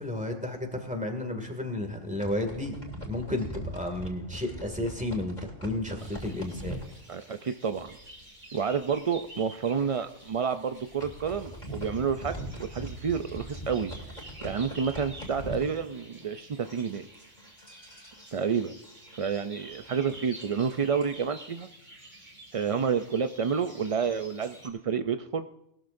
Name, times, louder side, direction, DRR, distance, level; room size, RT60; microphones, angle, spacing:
voice 1, 0.0-2.8 3.0-6.8, left 1 dB, 5° right, 4 dB, 2.1 m, -32 dB
sound 1, 2.0-8.3 8.6-8.8 9.1-9.2 9.8-10.0 10.6-16.4 16.6-21.3, right 1 dB, 35° left, 3.0 m, -42 dB
sound 2, 6.0-24.7, right 1 dB, 40° right, 2.8 m, -50 dB
voice 2, 7.1-7.9 8.5-13.9 14.4-17.1 18.3-18.7 19.1-21.7 22.5-25.5, right 6 dB, 60° right, 9 dB, 0.3 m, -29 dB
20.0 x 13.0 x 2.6 m, 0.80 s
omnidirectional pair, 1.2 m